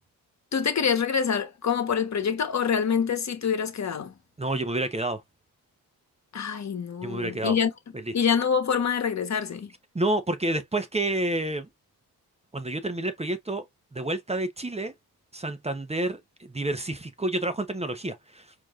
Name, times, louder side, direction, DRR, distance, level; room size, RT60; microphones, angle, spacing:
voice 1, 0.5-4.1 6.3-7.7 8.1-9.7, left 7 dB, 45° left, 1.2 m, -26 dB
voice 2, 4.4-5.2 7.0-7.6 7.9-8.1 9.9-11.7 12.5-13.6 13.9-14.9 15.3-18.5, right 1 dB, 15° right, 0.8 m, -29 dB
4.6 x 2.9 x 2.5 m
cardioid pair, 65°, 39 cm